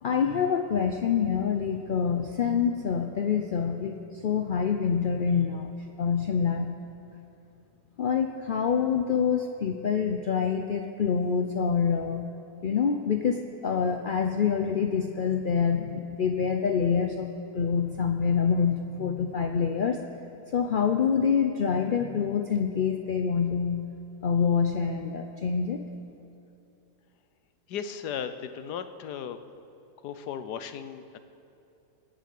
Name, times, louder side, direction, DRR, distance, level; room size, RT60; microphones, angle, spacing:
voice 1, 0.0-5.7 6.0-6.7 8.0-12.3 12.6-17.3 17.5-20.0 20.5-23.9 24.2-25.8, left 6 dB, 55° left, 4 dB, 0.6 m, -26 dB
voice 2, 27.7-29.4 30.0-31.2, left 8 dB, 80° left, 10 dB, 1.4 m, -36 dB
21.5 x 7.7 x 8.4 m, 2.7 s
omnidirectional pair, 1.7 m